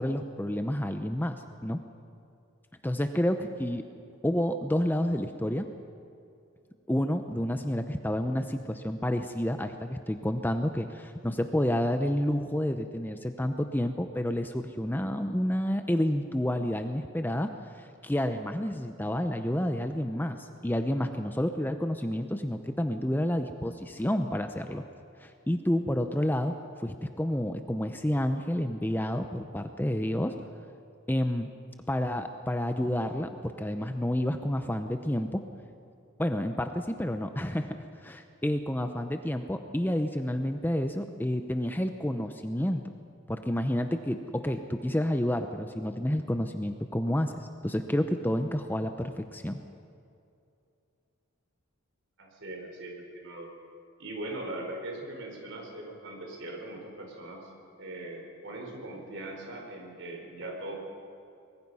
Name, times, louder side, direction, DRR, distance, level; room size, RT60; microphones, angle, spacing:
voice 1, 0.0-1.8 2.8-3.8 4.2-5.7 6.9-17.5 17.7-24.8 25.2-26.5 26.8-30.3 31.1-31.5 31.9-35.4 36.2-42.8 43.3-49.6, left 1 dB, 10° left, 7 dB, 0.6 m, -29 dB
voice 2, 52.2-53.5 54.0-57.5 57.8-60.8, right 1 dB, 60° right, 1 dB, 4.7 m, -40 dB
24.0 x 21.0 x 5.6 m, 2.5 s
head